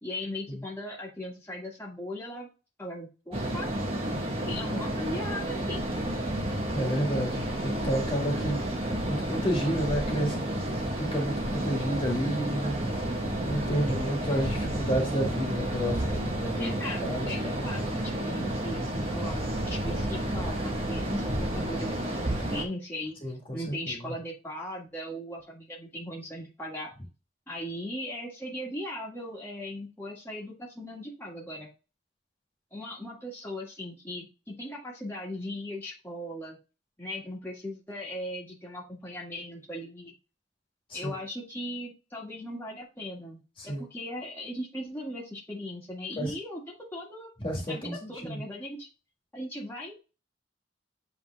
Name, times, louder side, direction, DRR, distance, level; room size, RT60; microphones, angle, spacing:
voice 1, 0.0-2.5 2.8-3.7 4.4-5.8 16.6-23.2 23.5-26.9 27.5-31.7 32.7-36.6 37.0-40.1 40.9-47.3 47.7-48.9 49.3-50.0, left 1 dB, 10° left, -4 dB, 1.8 m, -38 dB
sound 1, 3.3-22.6, right 1 dB, 30° right, 1.3 m, -31 dB
voice 2, 6.7-10.4 11.0-12.9 13.5-16.7 17.0-17.3 23.2-24.0 40.9-41.1 43.6-43.8 46.2-46.3 47.4-48.3, equal, 30° left, 0 dB, 1.8 m, -31 dB
8.1 x 3.5 x 3.4 m, 0.30 s
head